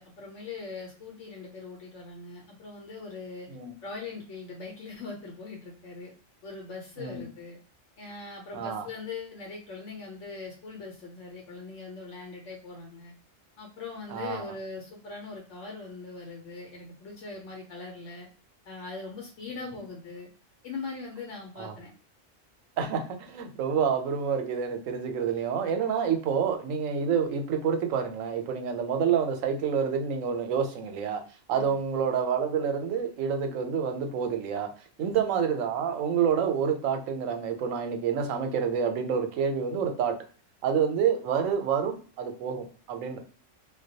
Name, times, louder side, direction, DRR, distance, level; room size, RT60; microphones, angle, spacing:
voice 1, 0.0-3.5 3.8-6.1 6.4-7.6 8.0-13.1 13.6-18.3 18.7-20.3 20.6-21.9 31.5-31.8 35.0-35.2, left 4 dB, 70° left, -1 dB, 0.9 m, -41 dB
voice 2, 7.0-7.3 8.5-8.9 14.1-14.5 19.5-19.8 21.6-21.7 22.8-31.2 31.5-34.7 35.0-40.1 40.6-43.2, right 7 dB, 90° right, 6 dB, 1.0 m, -28 dB
2.2 x 2.1 x 2.7 m, 0.41 s
omnidirectional pair, 1.3 m